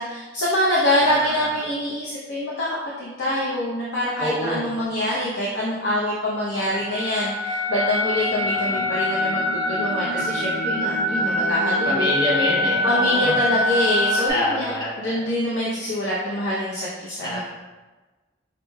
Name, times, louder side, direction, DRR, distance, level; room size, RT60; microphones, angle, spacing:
voice 1, 0.0-12.1 12.8-17.4, left 1 dB, 85° left, -6 dB, 0.6 m, -25 dB
voice 2, 4.2-4.7 8.3-8.9 10.0-10.2 11.1-11.3 11.9-13.3 14.3-15.2 17.2-17.4, left 1 dB, 25° left, -4 dB, 0.7 m, -27 dB
sound 1, 6.6-14.3, left 1 dB, 55° left, 1.1 m, -24 dB
5.1 x 3.1 x 2.2 m, 1.2 s
head